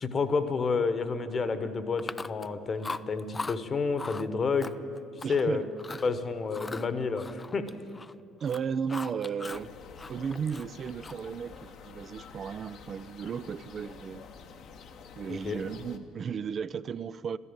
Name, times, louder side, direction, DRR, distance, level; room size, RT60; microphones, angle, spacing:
voice 1, 0.0-4.7 5.2-5.6 6.0-7.7 15.3-15.6, left 4 dB, 40° left, 1.2 m, -30 dB
Chewing mastication, 2.0-2.5 2.8-3.6 4.0-4.3 4.6-5.4 5.8-6.1 6.5-8.1 8.4-9.7 10.0-11.3, left 3 dB, 25° left, 0.4 m, -40 dB
voice 2, 5.1-5.6 5.9-6.0 8.4-9.7 10.1-14.3 15.2-17.4, right 6 dB, 50° right, 0.4 m, -35 dB
sound 1, 9.5-16.0, left 5 dB, 65° left, 1.0 m, -49 dB
13.0 x 11.0 x 8.9 m
hypercardioid pair, 65°, 0 cm